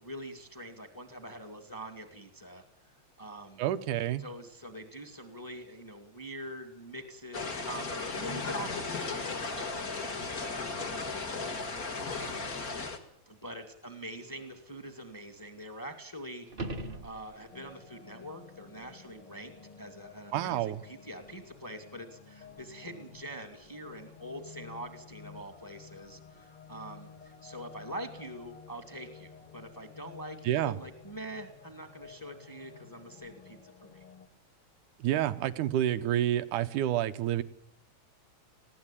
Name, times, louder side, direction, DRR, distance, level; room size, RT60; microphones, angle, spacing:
voice 1, 0.0-3.6 4.2-12.5 13.2-34.0, right 1 dB, 10° left, 8 dB, 1.8 m, -44 dB
voice 2, 3.6-4.2 20.3-20.8 30.5-30.8 35.0-37.4, right 12 dB, 90° right, 10 dB, 2.5 m, -29 dB
sound 1, 7.3-13.0, left 4 dB, 35° left, 2.1 m, -36 dB
sound 2, 16.5-17.7 22.6-22.7, right 2 dB, 50° right, 0.6 m, -39 dB
sound 3, 17.5-34.3, left 6 dB, 50° left, 2.8 m, -53 dB
20.0 x 16.0 x 9.0 m, 0.68 s
omnidirectional pair, 3.5 m